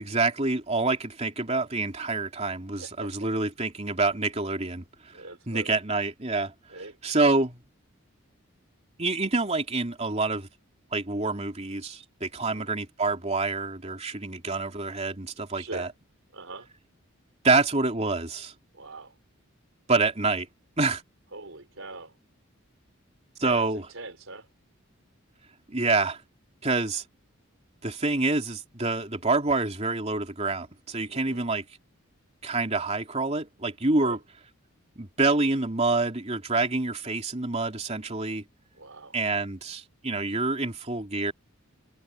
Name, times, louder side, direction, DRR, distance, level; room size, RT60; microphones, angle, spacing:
voice 1, 0.0-6.5 7.0-7.6 9.0-10.5 10.9-15.9 17.4-18.5 19.9-20.5 20.8-21.0 23.4-23.9 25.7-26.2 26.6-27.0 27.8-31.6 32.4-34.2 35.0-38.4 39.1-41.3, right 3 dB, 30° right, 3.1 m, -27 dB
voice 2, 2.8-3.1 5.1-5.7 6.7-7.0 12.3-12.7 15.5-15.9 16.3-16.7 18.7-19.1 21.3-22.1 23.4-24.5 31.1-31.5 34.0-34.2 38.7-39.2, right 2 dB, 65° right, 4.9 m, -42 dB
head